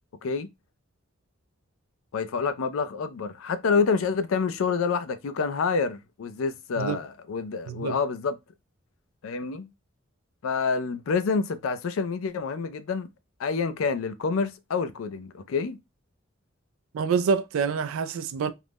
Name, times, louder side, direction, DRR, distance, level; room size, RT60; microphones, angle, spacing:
voice 1, 2.1-8.4 9.2-9.7 10.4-13.1 13.4-15.8, left 5 dB, 85° left, 0.4 m, -27 dB
voice 2, 16.9-18.5, right 6 dB, 85° right, 0.3 m, -26 dB
2.4 x 2.1 x 3.3 m
head